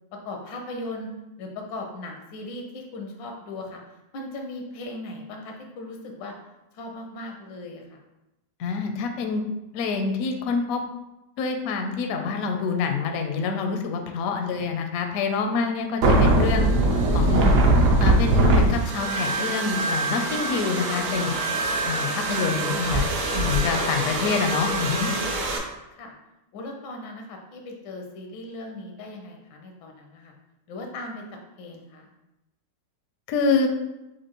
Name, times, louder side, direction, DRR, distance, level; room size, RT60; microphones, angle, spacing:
voice 1, 0.2-1.1 1.4-3.8 4.1-6.3 6.7-8.0 14.5-14.7 25.9-26.1 26.5-30.3 30.7-31.2 31.6-32.1, left 2 dB, 85° left, 2 dB, 1.4 m, -38 dB
voice 2, 8.6-9.4 9.7-10.8 11.4-16.7 17.1-17.5 18.0-21.3 21.9-23.1 23.3-25.1 33.3-33.7, left 5 dB, 70° left, 4 dB, 0.8 m, -26 dB
sound 1, 16.0-25.6, right 2 dB, 65° right, 1.0 m, -22 dB
5.9 x 2.5 x 2.9 m, 0.96 s
omnidirectional pair, 1.9 m